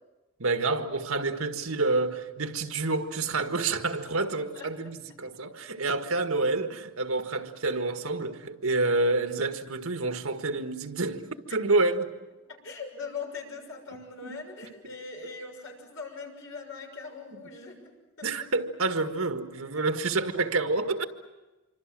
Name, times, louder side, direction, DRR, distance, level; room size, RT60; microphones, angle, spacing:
voice 1, 0.4-12.1 13.9-14.4 18.2-21.0, right 3 dB, 85° right, 1.8 m, -28 dB
voice 2, 12.6-17.7 18.2-18.3, left 4 dB, 65° left, 6.4 m, -40 dB
26.5 x 25.0 x 7.6 m
head